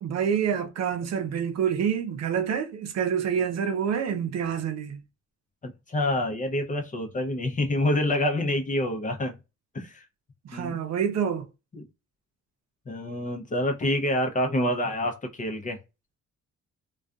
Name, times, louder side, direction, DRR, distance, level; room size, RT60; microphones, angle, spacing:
voice 1, 0.0-5.0 10.4-11.5, right 8 dB, 60° right, 0.6 m, -27 dB
voice 2, 5.6-9.4 9.7-10.0 10.5-10.8 11.7-11.8 12.9-15.8, left 1 dB, 25° left, 0.6 m, -27 dB
2.5 x 2.3 x 2.3 m
cardioid pair, 90°, 30 cm